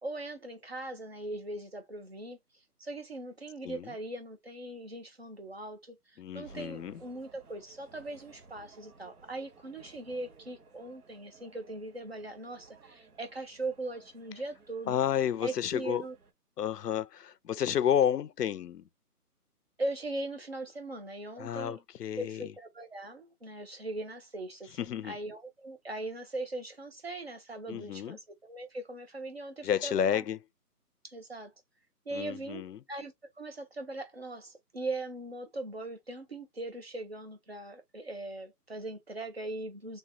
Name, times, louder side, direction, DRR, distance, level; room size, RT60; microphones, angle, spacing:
voice 1, 0.0-2.4 2.8-15.0 15.4-16.1 19.8-21.8 22.2-30.2 31.0-31.5 32.1-32.6 32.9-40.0, right 2 dB, 40° right, 0.8 m, -40 dB
voice 2, 6.2-7.0 14.9-16.0 16.6-18.8 21.4-22.5 24.8-25.2 27.7-28.2 29.6-30.4 32.1-32.8, left 9 dB, 85° left, 0.6 m, -31 dB
sound 1, 6.4-16.3, right 4 dB, 65° right, 1.1 m, -57 dB
3.4 x 3.1 x 2.6 m
hypercardioid pair, 180°, 47 cm